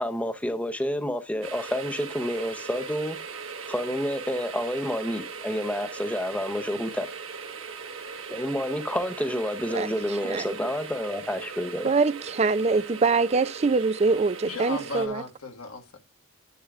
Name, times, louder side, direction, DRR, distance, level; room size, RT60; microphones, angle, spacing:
voice 1, 0.0-3.2 3.7-7.1 8.3-11.9, equal, 5° left, 0.7 m, -29 dB
sound 1, 1.4-15.1, right 5 dB, 75° right, 1.4 m, -39 dB
voice 2, 9.7-10.5 11.8-15.2, right 4 dB, 30° right, 0.4 m, -24 dB
voice 3, 14.4-16.0, left 3 dB, 85° left, 1.6 m, -36 dB
10.5 x 7.9 x 2.4 m
head